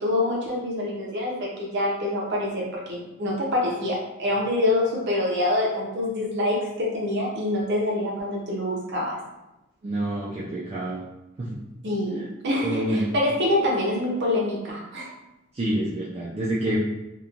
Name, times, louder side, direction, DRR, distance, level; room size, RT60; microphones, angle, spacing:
voice 1, 0.0-9.2 11.8-15.1, left 1 dB, 50° right, -4 dB, 0.7 m, -26 dB
voice 2, 9.8-11.0 11.4-11.6 12.6-13.1 15.5-16.8, right 1 dB, 25° right, -7 dB, 0.3 m, -27 dB
2.9 x 2.2 x 2.4 m, 0.94 s
head